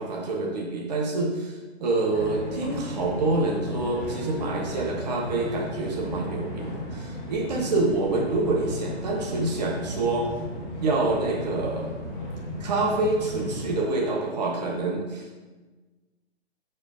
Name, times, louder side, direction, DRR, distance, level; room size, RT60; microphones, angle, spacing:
voice 1, 0.0-1.3 1.8-10.3 10.8-11.9 12.6-15.4, right 2 dB, 40° right, -1 dB, 1.2 m, -27 dB
sound 1, 2.1-13.8, left 1 dB, 15° left, 1.1 m, -35 dB
7.6 x 6.1 x 2.6 m, 1.3 s
figure-of-eight pair, 130°, 33 cm